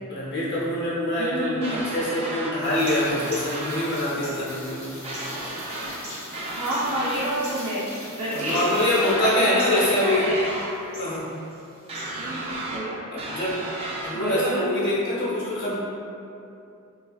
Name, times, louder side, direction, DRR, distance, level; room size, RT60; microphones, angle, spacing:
voice 1, 0.1-4.9 8.3-10.3 11.0-11.3 13.1-13.6 14.0-15.7, left 1 dB, 55° left, -7 dB, 0.7 m, -25 dB
voice 2, 1.2-1.8 6.5-7.8 8.2-8.6 9.0-10.5 12.2-12.9 14.1-14.6, right 1 dB, 85° right, -9 dB, 0.5 m, -29 dB
sound 1, 1.6-2.5 2.8-3.9 5.0-6.0 6.3-7.3 8.5-9.4 9.7-10.7 11.9-12.8 13.2-14.2, right 2 dB, 25° right, 0.3 m, -34 dB
Rain, 2.6-9.1, left 1 dB, 15° left, 0.6 m, -41 dB
sound 2, 2.7-12.7, right 1 dB, 50° right, 1.0 m, -46 dB
3.2 x 2.3 x 2.3 m, 2.6 s
head